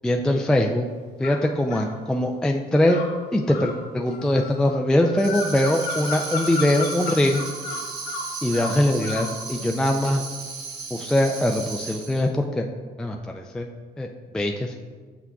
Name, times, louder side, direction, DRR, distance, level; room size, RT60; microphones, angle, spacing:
voice 1, 0.0-0.9 1.2-3.0 3.3-7.5 8.4-10.2 10.9-12.7 13.0-13.7 14.0-14.1 14.3-14.7, left 1 dB, 5° left, 2 dB, 0.3 m, -22 dB
sound 1, 1.2-1.9 2.8-9.4, left 3 dB, 85° left, 1.0 m, -34 dB
Tambourine, 5.2-12.3, right 5 dB, 85° right, 1.2 m, -36 dB
7.2 x 5.9 x 2.3 m, 1.5 s
cardioid pair, 110°, 17 cm